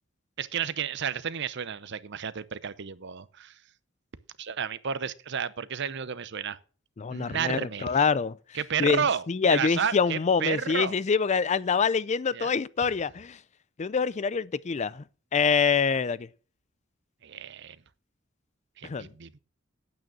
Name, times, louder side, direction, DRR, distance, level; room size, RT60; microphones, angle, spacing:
voice 1, 0.4-3.5 4.4-6.6 7.1-7.9 8.5-9.2 9.5-10.9 12.3-12.5 17.2-17.8 18.8-19.4, right 7 dB, 60° right, 0.7 m, -31 dB
voice 2, 7.0-8.3 8.8-13.4 13.8-15.0 15.3-16.3 18.8-19.1, left 5 dB, 35° left, 0.4 m, -25 dB
9.3 x 8.8 x 6.1 m
head